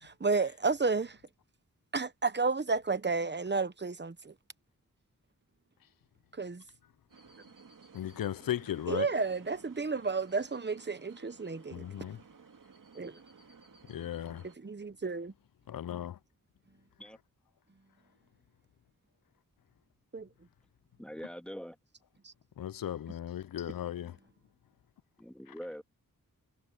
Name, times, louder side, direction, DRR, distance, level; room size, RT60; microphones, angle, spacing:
voice 1, 0.0-1.2 1.9-4.3 6.3-6.6 8.9-11.8 12.9-13.2 14.6-15.3 20.1-20.3 22.2-22.3, right 4 dB, 30° right, 1.1 m, -32 dB
sound 1, 7.1-14.6, right 5 dB, 70° right, 2.1 m, -56 dB
voice 2, 7.9-9.1 11.7-12.2 13.9-14.5 15.7-16.2 22.6-24.2, left 11 dB, 80° left, 0.6 m, -36 dB
voice 3, 21.0-21.8 25.2-25.8, equal, 5° left, 2.2 m, -43 dB
wide cardioid pair, 70°, 34 cm